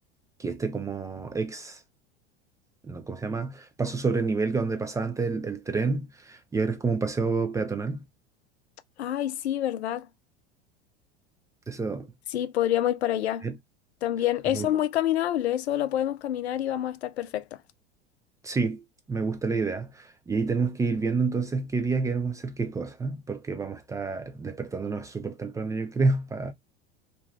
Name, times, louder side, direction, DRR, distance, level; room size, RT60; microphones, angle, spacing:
voice 1, 0.4-1.8 2.8-8.0 11.7-12.1 13.4-13.6 14.5-14.7 18.4-18.8 19.1-26.5, right 4 dB, 10° right, 0.4 m, -29 dB
voice 2, 9.0-10.1 12.3-13.5 14.0-17.6, left 12 dB, 70° left, 0.5 m, -27 dB
2.7 x 2.2 x 3.2 m
figure-of-eight pair, 80°, 33 cm